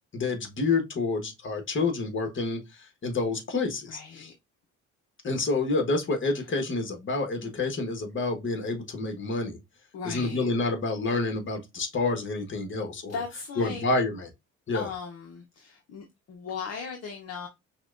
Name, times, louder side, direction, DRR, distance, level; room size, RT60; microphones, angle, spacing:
voice 1, 0.1-4.3 5.2-9.6 10.0-13.2 13.6-14.3 14.7-14.9, left 3 dB, 40° left, 1.3 m, -28 dB
voice 2, 3.9-4.3 7.4-7.5 9.9-10.5 13.1-13.8 14.7-17.5, left 5 dB, 55° left, 0.7 m, -37 dB
5.6 x 2.2 x 2.4 m
cardioid pair, 90°, 30 cm